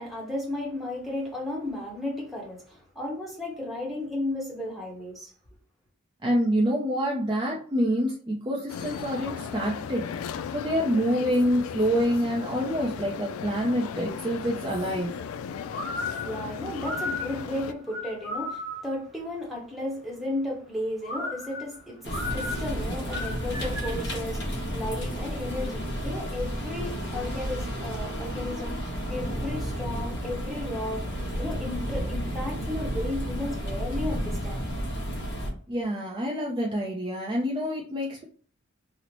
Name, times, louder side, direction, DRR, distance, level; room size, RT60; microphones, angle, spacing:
voice 1, 0.0-5.3 16.0-31.0 31.4-34.6, left 1 dB, ahead, 0.9 m, -34 dB
voice 2, 6.2-15.2 35.7-38.2, equal, 20° right, 0.4 m, -27 dB
sound 1, 8.7-17.7, left 7 dB, 90° left, 0.3 m, -36 dB
sound 2, 15.7-19.0 21.0-24.1, left 2 dB, 40° left, 1.4 m, -35 dB
sound 3, 22.0-35.5, equal, 55° left, 0.9 m, -32 dB
3.0 x 2.0 x 3.9 m
head